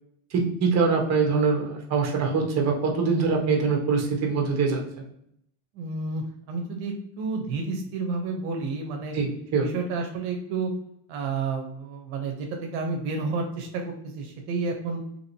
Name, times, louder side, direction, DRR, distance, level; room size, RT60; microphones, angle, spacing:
voice 1, 0.3-5.0 9.1-9.7, right 4 dB, 40° right, 1 dB, 0.9 m, -24 dB
voice 2, 5.7-9.1 9.6-10.7 11.1-15.0, right 4 dB, 75° right, 2 dB, 0.7 m, -30 dB
2.9 x 2.8 x 2.7 m, 0.73 s
supercardioid pair, 110°, 40 cm